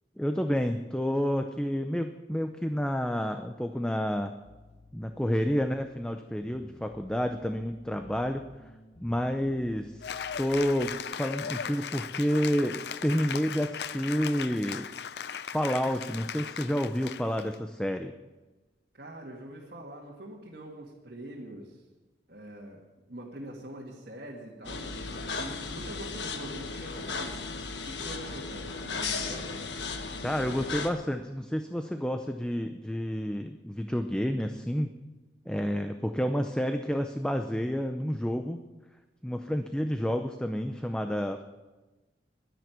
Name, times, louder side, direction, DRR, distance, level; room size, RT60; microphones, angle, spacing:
voice 1, 0.2-4.3 4.9-8.4 9.0-14.9 15.4-18.1 30.2-34.9 35.5-38.6 39.2-41.4, equal, 5° left, 6 dB, 0.6 m, -29 dB
sound 1, 4.4-10.9, left 2 dB, 35° left, 1.2 m, -55 dB
Cheering / Applause, 10.0-17.5, left 7 dB, 70° left, 0.5 m, -38 dB
voice 2, 18.9-21.8 22.3-22.8 23.1-27.3 27.8-29.6, right 1 dB, 60° right, -4 dB, 2.2 m, -44 dB
sound 2, 24.6-30.9, left 4 dB, 85° left, 1.4 m, -36 dB
11.0 x 10.5 x 9.4 m, 1.2 s
head